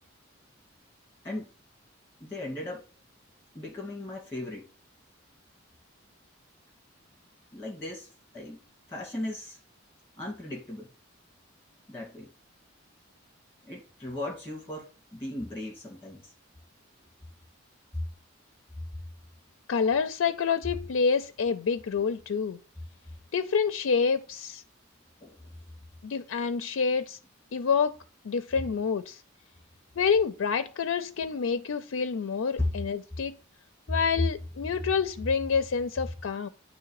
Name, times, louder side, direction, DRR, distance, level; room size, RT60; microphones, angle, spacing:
voice 1, 2.2-2.9 3.5-4.7 7.5-8.6 8.9-9.6 10.2-10.9 11.9-12.3 13.6-16.3 17.9-18.0 25.2-25.5 32.6-32.7 34.7-34.9, left 1 dB, 10° left, 2.2 m, -36 dB
voice 2, 19.7-22.6 23.3-24.6 26.0-27.2 27.5-28.0 28.2-29.2 30.0-33.4 33.9-36.5, left 5 dB, 80° left, 0.4 m, -27 dB
9.3 x 3.1 x 4.7 m
head